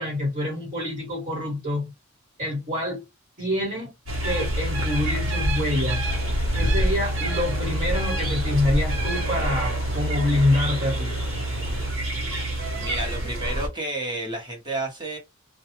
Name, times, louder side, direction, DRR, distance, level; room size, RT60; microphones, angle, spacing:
voice 1, 0.0-1.9 2.4-3.0 3.4-3.9 4.2-6.1 6.5-11.2, left 1 dB, 40° right, 1.5 m, -26 dB
sound 1, 4.1-13.7, right 1 dB, 65° right, 1.0 m, -26 dB
sound 2, 6.0-11.9, left 3 dB, 55° left, 0.5 m, -40 dB
voice 2, 12.8-15.2, right 2 dB, 20° right, 1.1 m, -31 dB
2.3 x 2.3 x 2.9 m
head